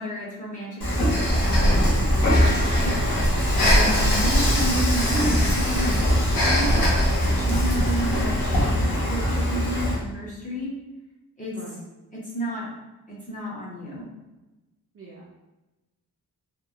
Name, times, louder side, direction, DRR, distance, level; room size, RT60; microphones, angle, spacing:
voice 1, 0.0-2.9 3.5-3.9 4.1-6.7 7.2-10.7 11.4-11.5 12.1-12.7 13.1-14.1, right 1 dB, 20° left, -6 dB, 0.6 m, -32 dB
Dishes pots and pans / Frying (food), 0.8-10.0, equal, 85° left, 1.1 m, -24 dB
Breathing, 1.1-8.8, equal, 65° left, 0.8 m, -23 dB
voice 2, 3.8-4.2 11.5-11.8 14.9-15.3, left 1 dB, 40° right, -5 dB, 0.4 m, -35 dB
2.9 x 2.1 x 2.4 m, 1.0 s
wide cardioid pair, 180°, 37 cm